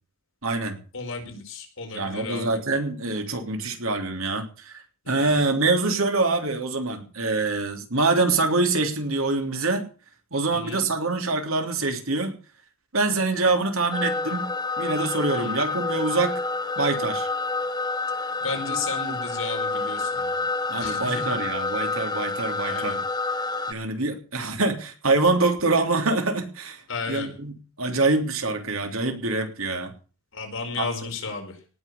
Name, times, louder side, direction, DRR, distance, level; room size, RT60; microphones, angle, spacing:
voice 1, 0.4-0.8 1.9-9.9 10.3-12.3 12.9-14.5 14.8-16.4 16.8-17.3 20.7-23.0 23.7-26.8 27.1-27.5 27.8-29.9 30.8-30.9, right 3 dB, 85° right, 5 dB, 3.3 m, -25 dB
voice 2, 0.9-2.5 5.0-5.4 10.5-10.8 15.3-15.5 18.4-20.4 20.8-21.4 22.6-23.0 26.9-27.3 30.3-31.6, left 4 dB, 75° left, 3 dB, 4.8 m, -33 dB
sound 1, 13.9-23.7, left 3 dB, 20° left, 1.1 m, -28 dB
18.5 x 6.3 x 8.5 m, 0.38 s
head